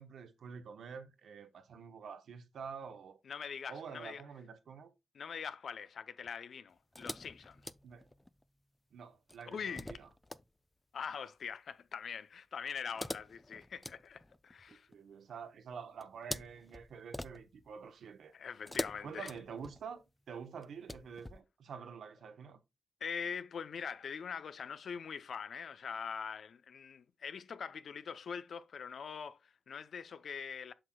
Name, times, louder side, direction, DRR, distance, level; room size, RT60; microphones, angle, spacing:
voice 1, 0.0-3.2 3.7-4.9 7.8-8.1 8.9-10.1 14.7-18.3 19.0-22.6, right 6 dB, 80° right, 1.0 m, -48 dB
voice 2, 3.3-4.2 5.1-7.6 9.5-9.9 10.9-14.9 18.3-19.3 23.0-30.7, left 6 dB, 70° left, 0.6 m, -43 dB
sound 1, 6.9-8.4 9.3-10.4 12.8-15.0 16.0-17.7 18.6-20.0 20.6-21.4, left 1 dB, 10° left, 0.4 m, -45 dB
7.6 x 6.1 x 2.2 m
cardioid pair, 80°, 0 cm